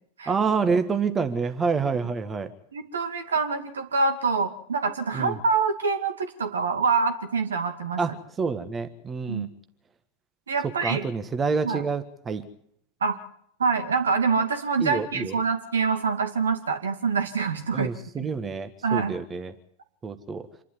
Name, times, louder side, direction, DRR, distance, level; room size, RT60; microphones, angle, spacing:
voice 1, 0.3-2.5 5.1-5.4 8.0-8.1 8.4-9.5 10.8-12.4 14.8-15.4 17.7-19.5 20.0-20.5, right 5 dB, 20° right, 9 dB, 1.6 m, -27 dB
voice 2, 2.7-8.0 9.3-9.5 10.5-11.0 11.6-11.8 13.0-13.2 13.6-17.9 18.2-18.3 18.8-19.1, right 5 dB, 70° right, 7 dB, 2.3 m, -25 dB
26.5 x 12.0 x 9.8 m, 0.68 s
figure-of-eight pair, 90°, 0 cm